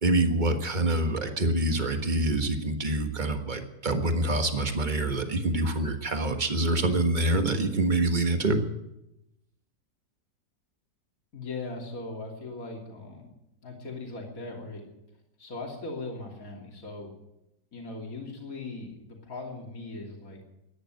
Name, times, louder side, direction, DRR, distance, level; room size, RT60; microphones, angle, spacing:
voice 1, 0.0-8.6, right 2 dB, 30° right, 6 dB, 1.5 m, -26 dB
voice 2, 11.3-13.3 13.6-14.8 15.4-17.1 17.7-20.4, left 3 dB, 55° left, 0 dB, 3.3 m, -39 dB
14.5 x 10.5 x 9.2 m, 0.89 s
omnidirectional pair, 1.8 m